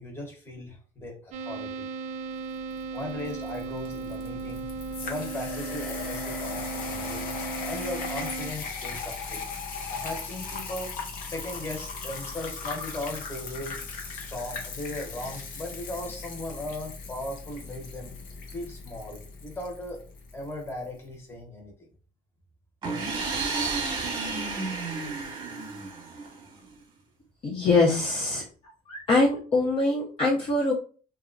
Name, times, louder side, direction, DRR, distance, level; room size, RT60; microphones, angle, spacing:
voice 1, 0.0-1.9 2.9-4.7 5.0-7.3 7.7-9.4 9.9-11.0 11.2-13.8 14.1-18.1 18.5-20.0 20.3-21.7, left 1 dB, 15° left, 0 dB, 0.9 m, -37 dB
sound 1, 1.3-8.5, right 4 dB, 55° right, 0.4 m, -36 dB
sound 2, 2.8-20.8, left 4 dB, 70° left, 0.7 m, -38 dB
sound 3, 22.8-26.6, right 4 dB, 35° right, 0.9 m, -31 dB
voice 2, 27.4-28.4 28.9-30.7, left 3 dB, 35° left, -3 dB, 0.6 m, -23 dB
2.9 x 2.3 x 2.5 m, 0.39 s
cardioid pair, 130°, 15 cm